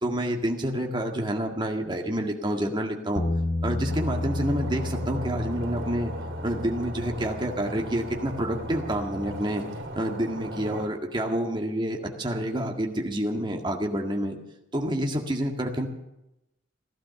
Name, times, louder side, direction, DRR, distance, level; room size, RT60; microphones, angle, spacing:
voice 1, 0.0-3.3 3.6-6.1 6.4-9.6 9.9-14.4 14.7-15.9, right 1 dB, 25° right, 2 dB, 1.9 m, -28 dB
sound 1, 3.2-9.4, left 1 dB, 45° left, 1.0 m, -32 dB
Stream, 3.9-10.9, right 1 dB, 85° right, 2.9 m, -38 dB
15.5 x 13.0 x 7.0 m, 0.91 s
head